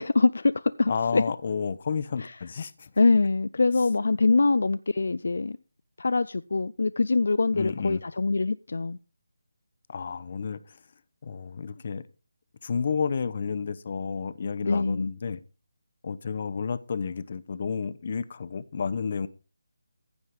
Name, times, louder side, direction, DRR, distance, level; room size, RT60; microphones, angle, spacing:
voice 1, 0.0-1.2 2.2-2.3 3.0-5.6 6.0-9.0 14.6-15.1, left 3 dB, 65° left, 0.4 m, -24 dB
voice 2, 0.9-2.9 7.5-8.0 9.9-10.8 11.2-12.0 12.6-15.4 16.0-19.3, left 5 dB, 45° left, 0.8 m, -31 dB
15.0 x 5.5 x 4.9 m
figure-of-eight pair, 160°, 0 cm